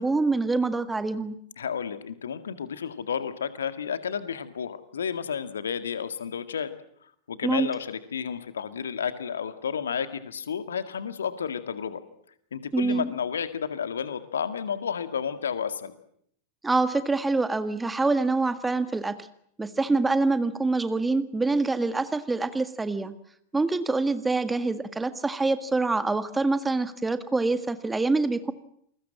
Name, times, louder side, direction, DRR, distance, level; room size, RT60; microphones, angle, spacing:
voice 1, 0.0-1.3 7.4-7.7 12.7-13.1 16.6-19.1 19.6-23.1 23.5-28.5, right 3 dB, 10° right, 11 dB, 1.7 m, -25 dB
voice 2, 1.6-6.7 7.3-12.0 12.5-15.9, left 7 dB, 65° left, 11 dB, 2.0 m, -31 dB
28.5 x 21.0 x 7.6 m, 0.67 s
figure-of-eight pair, 90°, 0 cm